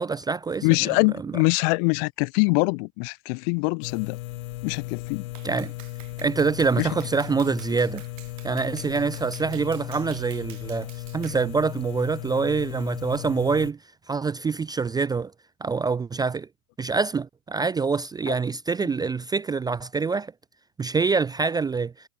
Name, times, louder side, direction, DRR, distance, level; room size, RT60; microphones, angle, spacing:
voice 1, 0.0-0.9 1.2-1.3 5.4-5.7 6.2-8.0 8.4-13.8 14.1-15.3 15.6-16.5 16.8-20.3 20.8-21.9, right 5 dB, 10° right, 0.6 m, -25 dB
voice 2, 0.6-4.2 4.6-5.3 6.8-6.9 18.3-18.4, left 40 dB or more, 40° left, 0.8 m, -23 dB
sound 1, 3.8-13.7, left 18 dB, 70° left, 1.1 m, -36 dB
Clapping, 5.3-11.5, right 20 dB, 40° right, 3.4 m, -49 dB
supercardioid pair, 145°, 45 cm